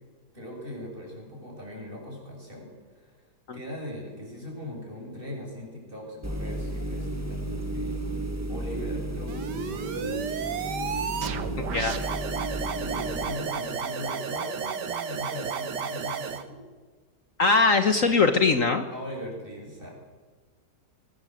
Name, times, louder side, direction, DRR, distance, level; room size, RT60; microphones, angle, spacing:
voice 1, 0.3-3.2 3.5-8.0 8.5-10.8 12.8-16.6 18.9-19.9, left 1 dB, 30° right, -1 dB, 7.6 m, -40 dB
sound 1, 6.2-13.3, right 1 dB, 10° right, 1.5 m, -33 dB
sound 2, 9.3-16.4, right 6 dB, 75° right, 1.9 m, -32 dB
voice 2, 17.4-18.8, left 4 dB, 50° left, 8 dB, 1.5 m, -21 dB
22.5 x 18.5 x 8.0 m, 1.4 s
omnidirectional pair, 1.8 m